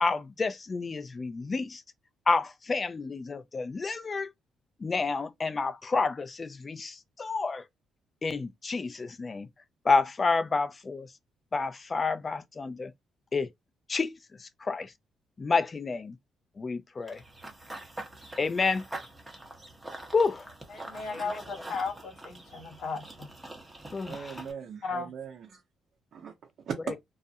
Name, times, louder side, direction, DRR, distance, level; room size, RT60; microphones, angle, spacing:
voice 1, 0.0-1.8 2.3-4.3 4.8-7.6 8.2-9.5 9.8-11.1 11.5-12.9 13.3-13.5 13.9-14.9 15.4-16.1 16.6-17.2 18.4-18.8 20.1-20.5 21.1-21.2 23.9-24.4 26.9-27.0, left 4 dB, 30° left, 0.4 m, -29 dB
Run / Bird vocalization bird call bird song, 17.1-24.5, right 2 dB, 15° right, 0.8 m, -44 dB
voice 2, 20.8-23.3 24.8-25.1, left 4 dB, 70° left, 1.1 m, -35 dB
voice 3, 24.0-25.6 26.1-26.8, right 7 dB, 60° right, 0.6 m, -40 dB
2.4 x 2.0 x 2.7 m
cardioid pair, 90°, 0 cm